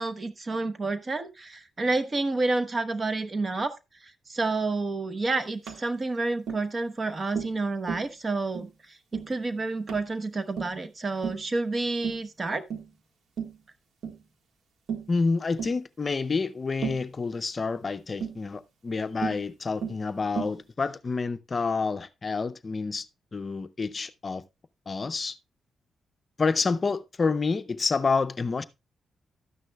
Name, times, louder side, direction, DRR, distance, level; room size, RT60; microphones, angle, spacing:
voice 1, 0.0-3.7 4.0-12.6, right 3 dB, 35° right, 0.9 m, -29 dB
Tap, 5.7-5.8 6.5-6.7 7.3-7.6 7.9-8.1 8.5-8.7 9.1-9.3 9.9-10.1 10.6-10.8 11.2-11.5 12.0-12.3 12.7-12.9 13.4-13.6 14.0-14.2 14.9-15.1 15.6-15.8 16.8-17.1 18.2-18.4 19.2-19.4 19.8-20.0 20.4-20.6, right 7 dB, 80° right, 1.6 m, -34 dB
voice 2, 15.1-23.1 23.3-24.4 24.9-25.4 26.4-28.6, left 4 dB, 40° left, 0.5 m, -28 dB
12.5 x 9.5 x 2.3 m
cardioid pair, 80°, 0 cm